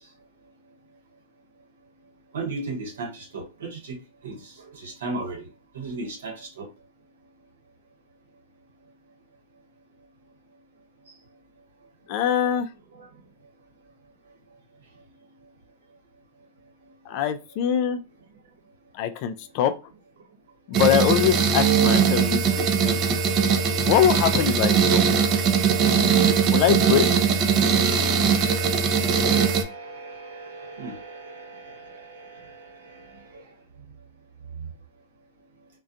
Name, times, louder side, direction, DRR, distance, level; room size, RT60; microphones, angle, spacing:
voice 1, 2.3-4.0 4.2-5.5 5.7-6.7 13.0-13.1 28.8-33.1 33.3-33.4, right 3 dB, 75° right, 2 dB, 0.9 m, -36 dB
voice 2, 12.1-12.7 17.1-18.0 18.9-19.7 20.7-23.0 23.8-25.0 26.5-27.1, left 9 dB, 50° left, 9 dB, 0.3 m, -23 dB
sound 1, 20.7-29.6, right 6 dB, 40° right, 0.5 m, -20 dB
2.4 x 2.2 x 2.5 m, 0.30 s
hypercardioid pair, 110°, 0 cm